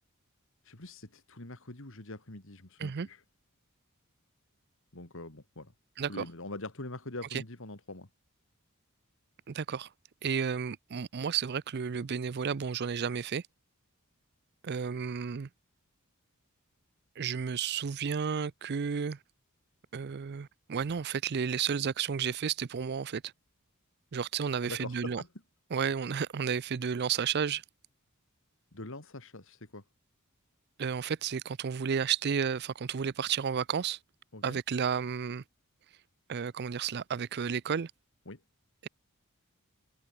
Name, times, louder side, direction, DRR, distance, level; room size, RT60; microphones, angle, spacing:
voice 1, 0.6-3.2 4.9-5.7 6.1-8.1 24.6-25.3 28.7-29.8 34.3-34.6 38.3-38.4, left 2 dB, 60° left, 2.9 m, -43 dB
voice 2, 9.5-9.9 10.2-13.4 14.6-15.5 17.2-19.2 19.9-23.3 24.1-25.2 25.7-27.6 30.8-34.0 34.4-35.4 36.3-37.9 38.8-38.9, right 7 dB, 50° right, 0.5 m, -32 dB
head